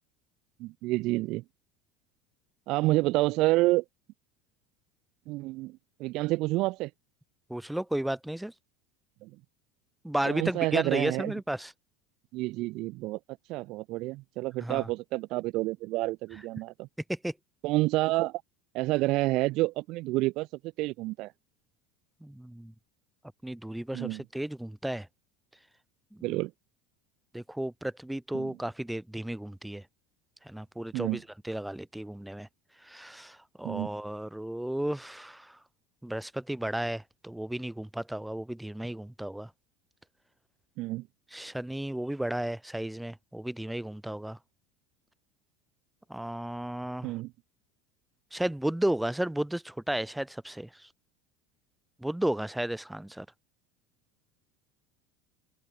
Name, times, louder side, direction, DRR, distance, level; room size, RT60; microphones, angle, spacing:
voice 1, 0.6-1.4 2.7-3.8 5.3-6.9 9.2-9.3 10.2-11.3 12.3-13.2 13.5-16.9 17.6-18.4 18.7-20.5 20.8-21.3 23.9-24.2 26.2-26.5 28.3-28.6 30.9-31.2 33.6-33.9 40.8-41.1 47.0-47.3, right 20 dB, 55° right, 4.7 m, -29 dB
voice 2, 7.5-8.5 10.0-11.7 14.6-14.9 17.1-17.3 22.2-22.7 23.4-25.1 26.3-26.4 27.3-29.8 30.5-32.5 32.8-35.6 36.0-39.5 41.3-44.4 46.1-47.1 48.3-50.7 52.0-53.3, right 1 dB, 5° right, 3.6 m, -33 dB
figure-of-eight pair, 75°, 0 cm